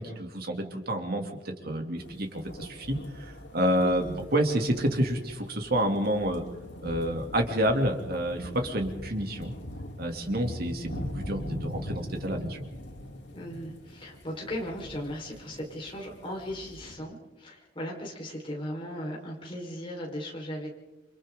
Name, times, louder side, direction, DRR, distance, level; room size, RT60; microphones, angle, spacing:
voice 1, 0.0-4.0 4.3-6.4 6.8-9.5 10.0-12.6, equal, 55° right, 3 dB, 2.9 m, -29 dB
sound 1, 2.0-16.9, left 1 dB, 80° left, 4.2 m, -42 dB
voice 2, 3.7-4.2 13.3-20.7, equal, 30° left, -2 dB, 4.7 m, -37 dB
29.0 x 25.5 x 3.9 m, 1.1 s
head